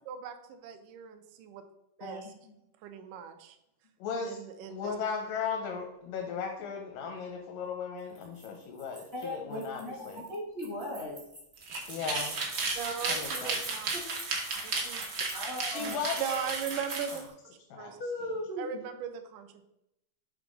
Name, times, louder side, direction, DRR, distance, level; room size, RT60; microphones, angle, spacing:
voice 1, 0.1-1.6 2.0-2.3 2.8-3.6 4.2-4.9 12.8-13.9 14.5-15.1 16.2-17.3 17.8-18.0 18.6-19.6, right 8 dB, 80° right, 8 dB, 2.1 m, -38 dB
voice 2, 2.0-2.5 9.1-11.2 13.9-14.0 15.3-16.0 18.0-18.7, left 1 dB, 50° left, -4 dB, 0.7 m, -38 dB
voice 3, 4.0-4.4 4.7-10.2 11.7-12.4 13.1-13.6 15.6-16.5 17.7-17.9, left 6 dB, 90° left, 3 dB, 2.4 m, -36 dB
sound 1, 8.0-17.3, right 2 dB, 40° right, 0.7 m, -49 dB
sound 2, 11.6-17.2, right 3 dB, 65° right, 1.0 m, -34 dB
6.8 x 3.5 x 5.2 m, 0.82 s
omnidirectional pair, 3.7 m